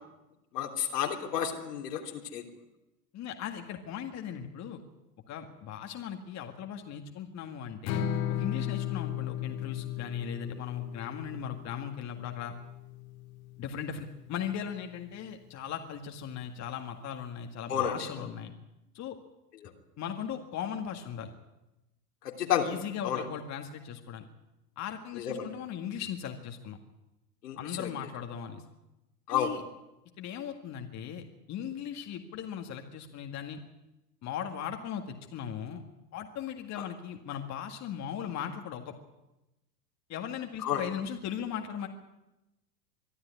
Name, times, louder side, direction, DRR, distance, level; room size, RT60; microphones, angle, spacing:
voice 1, 0.5-2.4 17.7-18.0 22.2-22.7 23.0-23.2 25.1-25.5 27.4-27.9 29.3-29.5 36.8-36.9 40.6-40.8, left 9 dB, 75° left, 2 dB, 3.4 m, -31 dB
voice 2, 3.1-4.8 5.3-8.0 8.3-12.5 13.6-18.5 18.9-19.2 20.0-21.3 22.6-24.3 24.8-26.8 27.6-28.6 29.3-29.6 30.2-33.6 34.2-35.8 36.1-38.9 40.1-41.9, left 8 dB, 35° left, 4 dB, 1.9 m, -38 dB
Strum, 7.9-14.1, left 10 dB, 55° left, 2.4 m, -36 dB
23.5 x 12.5 x 9.6 m, 0.97 s
hypercardioid pair, 95°, 48 cm